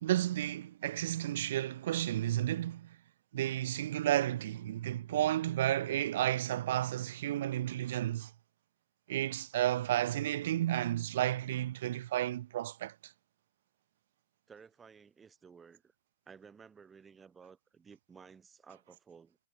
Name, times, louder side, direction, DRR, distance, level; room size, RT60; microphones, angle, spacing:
voice 1, 0.0-2.9 3.3-8.3 9.1-13.1, right 13 dB, 65° right, 0.8 m, -32 dB
voice 2, 14.5-15.9 16.3-19.4, right 6 dB, 15° right, 6.7 m, -56 dB
hypercardioid pair, 130°, 0 cm